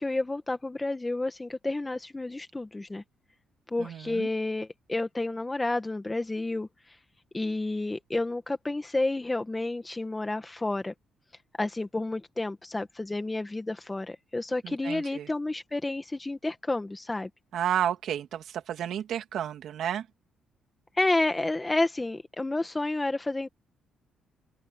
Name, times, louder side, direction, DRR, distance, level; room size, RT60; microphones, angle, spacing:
voice 1, 0.0-3.0 3.7-6.7 7.3-10.9 11.6-17.3 21.0-23.5, left 2 dB, 15° left, 1.7 m, -30 dB
voice 2, 3.8-4.3 14.6-15.3 17.5-20.1, right 10 dB, 70° right, 2.7 m, -31 dB
open air
cardioid pair, 90°, 0 cm